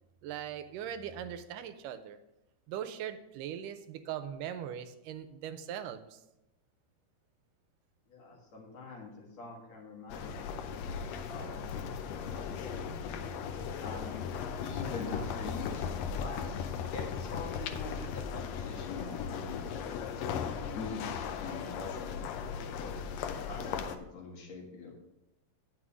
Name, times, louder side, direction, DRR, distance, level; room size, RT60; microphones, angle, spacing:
voice 1, 0.2-2.2 2.7-6.2, right 9 dB, 85° right, 10 dB, 2.2 m, -40 dB
voice 2, 8.1-10.7 11.3-11.6 12.1-12.9 13.8-14.3 14.6-20.1 20.8-22.1 22.8-22.9 23.2-25.0, left 4 dB, 60° left, -2 dB, 2.8 m, -44 dB
sound 1, 10.1-24.0, left 6 dB, 90° left, 1.5 m, -37 dB
9.6 x 5.9 x 4.9 m, 0.91 s
omnidirectional pair, 3.8 m